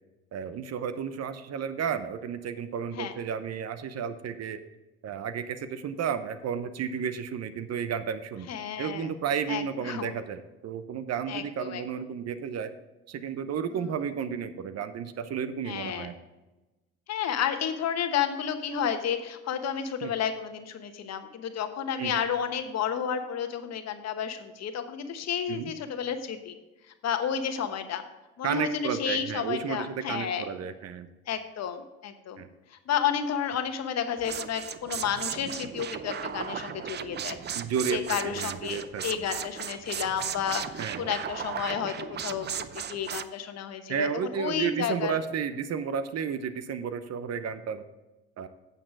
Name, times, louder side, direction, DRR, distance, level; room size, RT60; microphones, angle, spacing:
voice 1, 0.3-4.6 5.0-8.5 8.8-12.7 13.1-16.1 20.0-20.1 22.0-22.1 25.5-25.7 28.4-31.1 32.4-32.5 37.5-38.0 38.4-39.0 40.8-41.0 43.9-47.8 48.4-48.5, right 7 dB, 50° right, 12 dB, 0.8 m, -32 dB
voice 2, 8.5-9.1 9.5-10.1 11.3-11.8 13.7-13.9 15.6-16.1 17.1-26.5 27.0-28.0 28.4-30.5 31.3-32.4 32.7-37.4 37.9-42.5 42.7-44.1 44.4-45.2, left 8 dB, 55° left, 8 dB, 1.1 m, -31 dB
sound 1, 34.2-43.2, right 8 dB, 35° right, 0.5 m, -36 dB
8.8 x 6.6 x 4.7 m, 1.1 s
hypercardioid pair, 65°, 32 cm